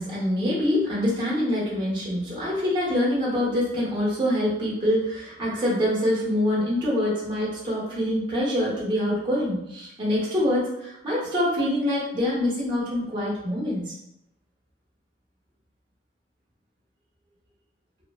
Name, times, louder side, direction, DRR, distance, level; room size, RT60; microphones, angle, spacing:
voice 1, 0.0-13.9, left 1 dB, 25° right, -7 dB, 1.0 m, -25 dB
2.7 x 2.3 x 2.3 m, 0.83 s
head